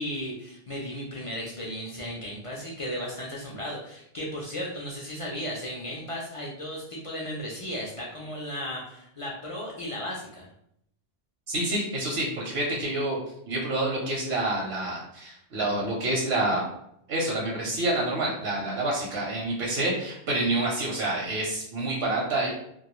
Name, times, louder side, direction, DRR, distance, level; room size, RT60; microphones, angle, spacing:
voice 1, 0.0-10.5, equal, 50° left, -3 dB, 0.4 m, -35 dB
voice 2, 11.5-13.2 13.5-16.7 17.1-22.5, right 2 dB, 80° right, -2 dB, 0.9 m, -28 dB
2.3 x 2.2 x 2.9 m, 0.73 s
omnidirectional pair, 1.0 m